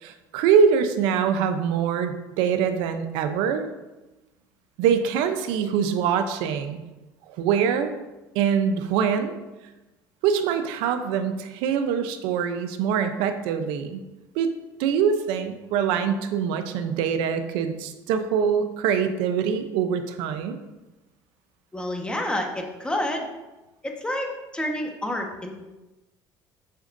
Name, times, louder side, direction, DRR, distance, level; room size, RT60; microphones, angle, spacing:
voice 1, 0.0-3.6 4.8-6.8 7.3-7.9 8.3-9.4 10.2-14.0 14.3-14.5 14.8-20.6, right 7 dB, 80° right, 8 dB, 0.7 m, -24 dB
voice 2, 21.7-23.3 23.8-25.5, left 1 dB, 10° left, 2 dB, 1.3 m, -29 dB
7.9 x 6.2 x 2.6 m, 1.1 s
supercardioid pair, 90°, 9 cm